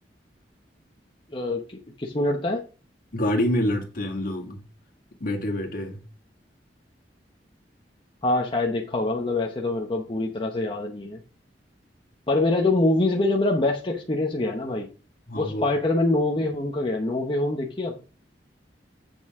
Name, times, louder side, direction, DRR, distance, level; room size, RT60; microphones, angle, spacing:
voice 1, 1.3-2.6 8.2-11.2 12.3-14.9 15.3-17.9, left 2 dB, 30° left, 0.9 m, -25 dB
voice 2, 3.1-4.6 5.2-6.0 15.3-15.6, left 1 dB, 55° left, 2.1 m, -26 dB
8.0 x 6.8 x 3.6 m
head